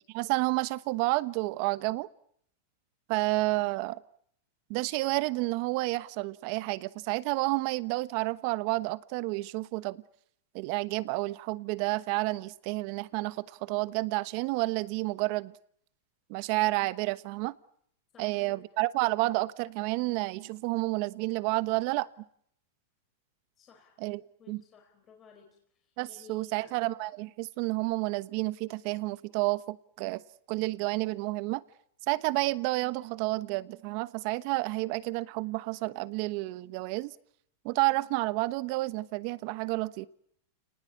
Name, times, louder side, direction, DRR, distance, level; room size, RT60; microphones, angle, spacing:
voice 1, 0.1-2.1 3.1-4.0 4.7-10.0 10.5-15.5 16.3-17.5 18.2-22.1 24.0-24.2 24.5-24.6 26.0-30.2 30.5-31.6 32.1-37.1 37.6-40.1, right 22 dB, 50° right, 16 dB, 1.1 m, -30 dB
voice 2, 18.1-18.6 23.6-26.7, left 5 dB, 25° left, 1 dB, 4.7 m, -56 dB
29.5 x 19.5 x 8.7 m, 0.70 s
supercardioid pair, 135°, 0 cm